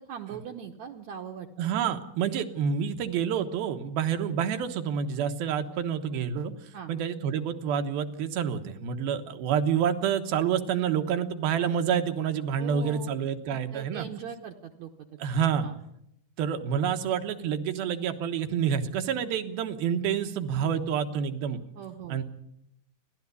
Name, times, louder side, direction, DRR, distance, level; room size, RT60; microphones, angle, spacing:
voice 1, 0.0-1.5 6.7-6.9 12.6-13.2 13.5-14.9 15.6-15.8 20.6-20.7 21.8-22.2, right 8 dB, 65° right, 3 dB, 2.0 m, -40 dB
voice 2, 1.6-6.5 6.9-14.1 15.2-15.7 16.4-21.6 22.1-22.2, right 8 dB, 85° right, 7 dB, 3.2 m, -28 dB
29.0 x 12.0 x 8.4 m, 0.78 s
omnidirectional pair, 4.2 m